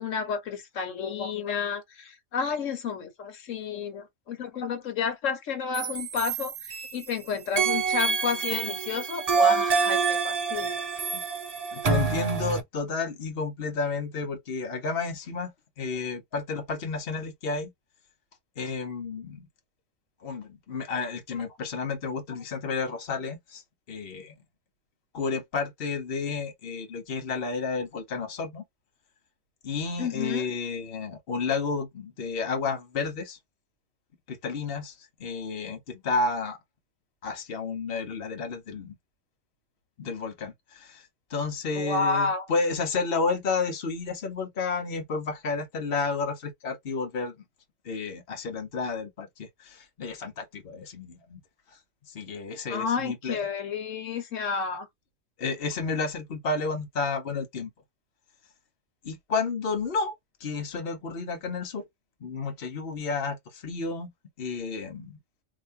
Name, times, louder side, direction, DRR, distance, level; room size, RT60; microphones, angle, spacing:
voice 1, 0.0-10.8 30.0-30.4 41.7-42.4 52.7-54.9, left 5 dB, 90° left, 1.3 m, -31 dB
sound 1, 5.7-7.1 7.6-12.6, right 5 dB, 40° right, 0.7 m, -27 dB
voice 2, 11.7-15.5 15.8-17.7 18.6-19.4 20.2-23.6 23.9-24.3 25.1-28.6 29.6-33.4 34.3-34.9 35.2-36.6 37.2-39.0 40.0-41.0 41.3-47.4 47.8-51.4 52.1-53.4 55.4-57.7 59.0-60.1 60.4-61.8 62.2-64.1 64.4-65.2, left 4 dB, 55° left, 1.1 m, -31 dB
3.4 x 2.8 x 2.7 m
omnidirectional pair, 1.3 m